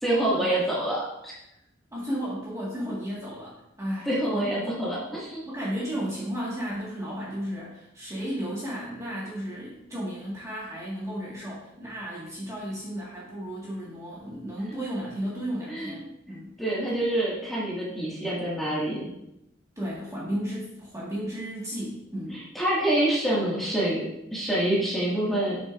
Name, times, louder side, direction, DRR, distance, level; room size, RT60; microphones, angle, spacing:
voice 1, 0.0-1.3 4.1-5.4 15.7-16.0 16.3-19.0 22.3-25.6, right 1 dB, ahead, -7 dB, 2.0 m, -27 dB
voice 2, 1.9-4.7 5.5-16.5 19.8-22.4, equal, 15° right, -7 dB, 1.8 m, -34 dB
7.6 x 6.7 x 2.6 m, 0.84 s
head